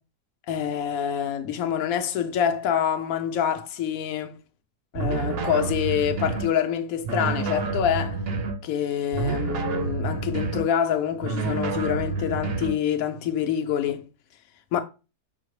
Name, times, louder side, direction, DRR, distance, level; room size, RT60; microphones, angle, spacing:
voice 1, 0.5-4.4 4.9-8.2 8.6-14.1 14.7-14.8, left 9 dB, 65° left, 1.1 m, -26 dB
sound 1, 4.9-6.5 7.0-8.6 9.1-10.7 11.2-12.8, right 4 dB, 60° right, 0.6 m, -28 dB
5.6 x 2.0 x 4.7 m
omnidirectional pair, 1.7 m